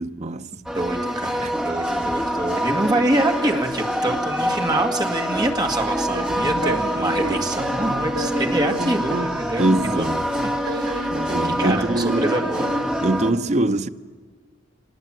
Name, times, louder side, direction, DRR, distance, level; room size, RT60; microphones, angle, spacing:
voice 1, 0.0-0.5 1.4-1.5 9.6-10.2 11.1-12.3 13.0-13.9, right 1 dB, 35° right, 0.7 m, -23 dB
voice 2, 0.5-10.1 10.6-11.1 11.4-12.7, right 1 dB, 20° right, 2.0 m, -25 dB
sound 1, 0.7-13.3, equal, 5° right, 1.7 m, -25 dB
sound 2, 6.0-9.3 9.6-12.9, right 2 dB, 90° right, 1.1 m, -31 dB
25.5 x 20.0 x 9.0 m
head